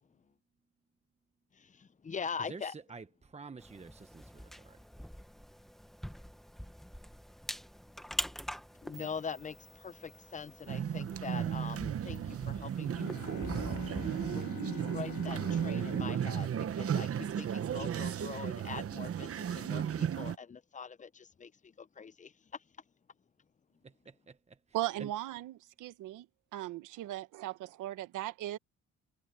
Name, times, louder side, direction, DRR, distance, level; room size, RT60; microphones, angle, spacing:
voice 1, 1.5-2.7 8.8-13.1 14.0-22.6, left 6 dB, 25° left, 0.7 m, -43 dB
voice 2, 2.4-4.9 23.8-25.1, right 4 dB, 20° right, 1.1 m, -49 dB
sound 1, 3.6-14.4, equal, ahead, 1.2 m, -45 dB
sound 2, 10.7-20.4, right 9 dB, 50° right, 1.1 m, -34 dB
sound 3, 13.0-17.6, left 11 dB, 80° left, 1.7 m, -47 dB
voice 3, 24.7-26.3 26.5-28.6, right 15 dB, 90° right, 1.3 m, -38 dB
cardioid pair, 90°, 30 cm